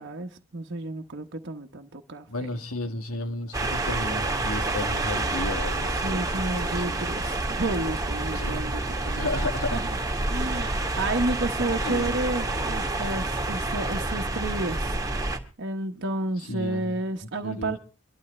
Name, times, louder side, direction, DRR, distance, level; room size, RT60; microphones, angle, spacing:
voice 1, 0.0-2.5 5.9-9.4 9.7-9.9 10.2-15.0 15.6-17.8, right 2 dB, 55° right, 1.1 m, -31 dB
voice 2, 2.3-7.0 8.3-8.6 9.2-9.8 11.8-12.1 16.5-17.0 17.4-17.8, left 2 dB, 90° left, 1.8 m, -33 dB
sound 1, 3.5-15.4, right 2 dB, 15° right, 1.6 m, -28 dB
24.5 x 12.0 x 3.2 m
head